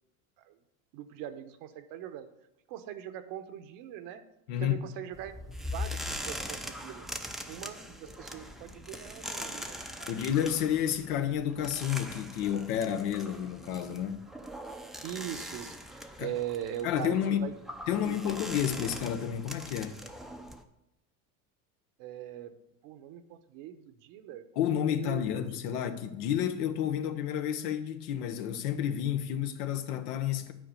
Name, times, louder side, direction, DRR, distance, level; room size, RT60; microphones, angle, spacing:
voice 1, 0.9-2.3 2.7-4.2 4.6-5.4 5.7-7.1 7.5-10.2 15.0-15.8 16.2-17.5 18.0-18.2 22.0-22.5 22.8-24.5 25.0-25.3 25.7-25.9, right 11 dB, 65° right, 1.0 m, -41 dB
voice 2, 4.5-4.9 10.1-14.3 16.2-16.3 16.8-17.5 17.9-20.0 24.6-30.5, left 10 dB, 80° left, 1.1 m, -30 dB
sound 1, 5.1-20.6, equal, ahead, 0.5 m, -42 dB
9.4 x 4.5 x 6.6 m
supercardioid pair, 105°, 46 cm